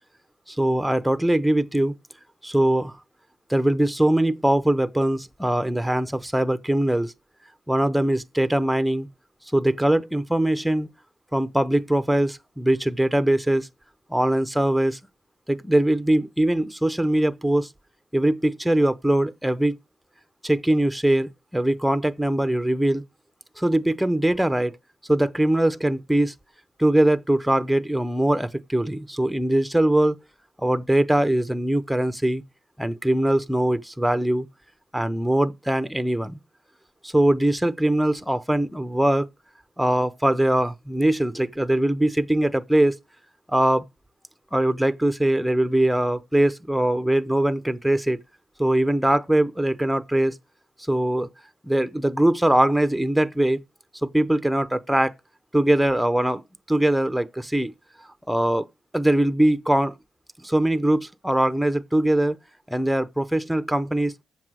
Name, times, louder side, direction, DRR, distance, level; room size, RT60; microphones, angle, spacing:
voice 1, 0.5-1.9 2.4-3.0 3.5-7.1 7.7-9.1 9.5-10.9 11.3-13.7 14.1-15.0 15.5-17.7 18.1-19.8 20.4-23.0 23.6-24.8 25.1-26.3 26.8-30.2 30.6-32.4 32.8-34.5 34.9-36.4 37.0-39.3 39.8-43.0 43.5-43.8 44.5-48.2 48.6-50.4 50.9-51.3 51.6-53.6 54.0-55.1 55.5-56.4 56.7-57.7 58.3-58.7 58.9-59.9 60.4-62.4 62.7-64.1, right 1 dB, 5° right, 0.7 m, -21 dB
7.5 x 5.9 x 6.2 m
cardioid pair, 75°, 0 cm